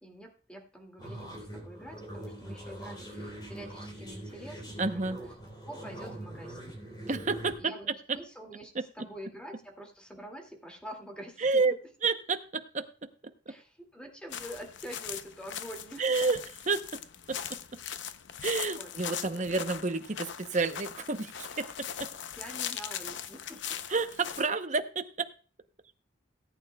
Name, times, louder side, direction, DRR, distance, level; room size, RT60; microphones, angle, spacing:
voice 1, 0.0-5.2 5.6-6.9 7.6-11.6 13.5-16.0 18.8-18.9 22.4-23.6, equal, 5° left, 2 dB, 2.2 m, -46 dB
sound 1, 1.0-7.6, right 1 dB, 25° left, 3.7 m, -43 dB
voice 2, 4.8-5.2 7.1-7.7 8.7-8.8 11.4-11.7 12.0-12.9 13.5-13.6 16.0-17.0 17.3-17.6 18.4-22.1 23.9-25.3, right 4 dB, 40° right, 8 dB, 0.8 m, -30 dB
sound 2, 14.3-24.5, left 9 dB, 70° left, 0.6 m, -40 dB
17.5 x 8.9 x 2.3 m, 0.39 s
head